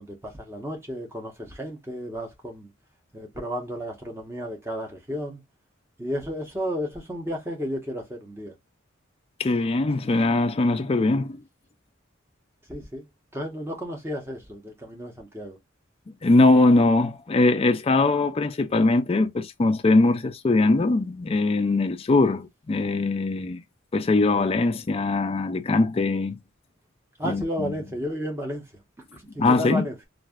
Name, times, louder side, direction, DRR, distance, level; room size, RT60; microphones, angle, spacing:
voice 1, 0.0-2.7 3.1-5.4 6.0-8.5 12.7-13.1 13.3-15.6 27.2-28.7 29.1-30.1, equal, 10° right, 0.8 m, -33 dB
voice 2, 9.4-11.4 16.1-23.6 23.9-26.4 27.2-27.7 29.4-29.8, left 2 dB, 30° left, 0.4 m, -21 dB
3.2 x 2.5 x 2.3 m
head